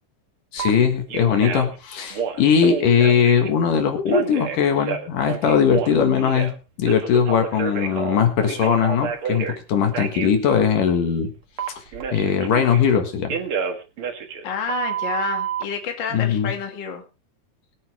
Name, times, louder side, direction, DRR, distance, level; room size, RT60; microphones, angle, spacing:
voice 1, 0.5-6.5 6.8-11.3 12.1-13.4 16.1-16.5, left 7 dB, 70° left, 6 dB, 3.3 m, -20 dB
Telephone, 0.6-0.7 1.1-1.8 2.1-3.5 4.1-6.5 6.9-9.6 9.9-10.3 11.6-12.9 13.3-15.6, right 7 dB, 50° right, 2.0 m, -28 dB
voice 2, 14.4-17.0, left 6 dB, 35° left, 4 dB, 2.5 m, -29 dB
22.5 x 8.6 x 3.4 m, 0.30 s
omnidirectional pair, 3.9 m